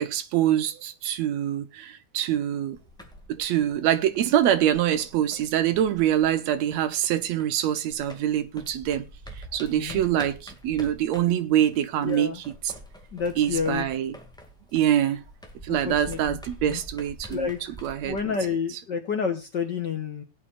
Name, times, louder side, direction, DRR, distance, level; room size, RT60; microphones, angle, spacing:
voice 1, 0.0-2.8 3.3-9.0 9.5-12.3 12.6-12.7 13.4-14.1 14.7-15.2 15.6-17.5 17.8-18.2, right 11 dB, 65° right, 2.1 m, -24 dB
sound 1, 2.7-7.6 7.9-18.2, right 1 dB, ahead, 1.6 m, -45 dB
voice 2, 12.0-12.4 13.1-13.8 15.7-16.4 16.6-16.8 17.3-17.7 18.0-20.2, left 6 dB, 50° left, 1.5 m, -29 dB
20.0 x 8.4 x 2.5 m
omnidirectional pair, 3.6 m